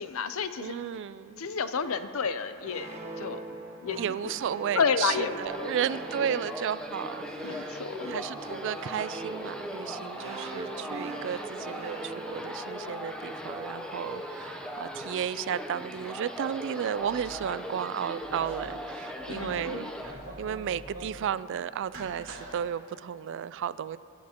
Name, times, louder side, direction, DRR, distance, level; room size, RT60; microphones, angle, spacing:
voice 1, 0.0-0.7 1.4-3.4 3.8-4.0 4.8-5.8 7.4-8.1 19.3-19.9, left 5 dB, 70° left, 11 dB, 0.6 m, -30 dB
voice 2, 0.6-1.5 4.0-19.9 20.4-24.0, right 8 dB, 60° right, 16 dB, 0.3 m, -33 dB
sound 1, 2.6-13.5, right 2 dB, 30° right, 1.2 m, -42 dB
sound 2, 5.5-20.1, equal, 5° left, 0.7 m, -39 dB
sound 3, 17.0-17.4 18.2-18.7 19.1-19.6 19.9-21.2 21.8-22.5, right 1 dB, 85° right, 2.4 m, -44 dB
25.0 x 10.5 x 2.9 m, 2.7 s
head